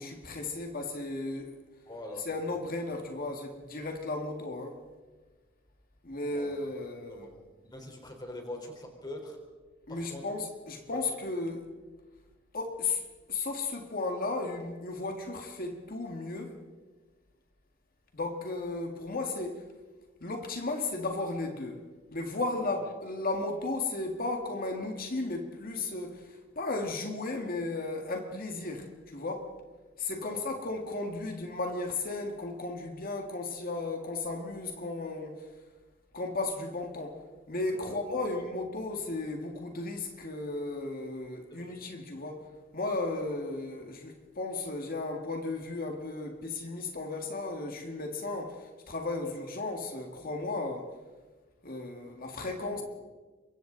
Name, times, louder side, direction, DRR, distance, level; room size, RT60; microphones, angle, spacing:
voice 1, 0.0-1.6 2.3-4.8 6.0-7.3 9.9-11.7 12.5-13.0 13.3-16.6 18.1-19.7 20.2-21.8 22.1-29.5 30.0-35.5 36.1-37.2 37.5-42.5 42.7-50.9 51.6-52.8, left 2 dB, 45° left, 2.0 m, -35 dB
voice 2, 1.9-2.3 2.6-2.7 6.2-6.6 7.1-7.3 7.6-9.4 9.9-10.2 11.0-11.2 22.7-22.8 30.1-30.4 37.7-38.3 41.5-41.7 52.3-52.8, left 1 dB, 20° left, 4.2 m, -44 dB
27.5 x 23.5 x 4.0 m
head